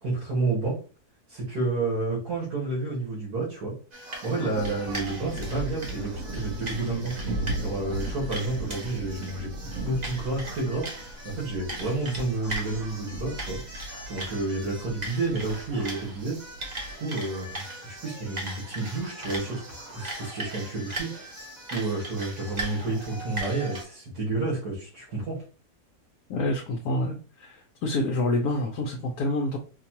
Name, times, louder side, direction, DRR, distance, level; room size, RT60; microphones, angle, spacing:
voice 1, 0.0-0.8 1.3-3.7 4.2-7.3 7.6-9.5 9.8-13.6 14.1-16.4 17.0-21.5 21.7-25.4, right 3 dB, 80° right, -7 dB, 2.1 m, -30 dB
sound 1, 3.9-23.8, right 1 dB, 30° right, 1.0 m, -39 dB
sound 2, 4.5-16.9, right 1 dB, 65° right, 0.9 m, -37 dB
voice 2, 26.3-29.6, left 1 dB, 75° left, 0 dB, 1.1 m, -27 dB
5.1 x 2.3 x 2.9 m, 0.36 s
omnidirectional pair, 1.7 m